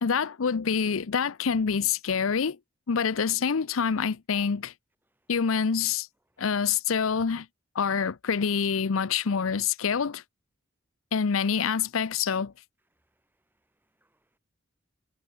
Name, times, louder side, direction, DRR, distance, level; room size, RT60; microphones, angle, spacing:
voice 1, 0.0-2.6 2.9-4.7 5.3-6.1 6.4-7.5 7.7-10.2 11.1-12.5, left 6 dB, 85° left, 0.6 m, -26 dB
voice 2, 5.0-5.6 6.1-6.7 7.1-7.2 12.9-14.4, right 1 dB, 10° right, 6.0 m, -75 dB
head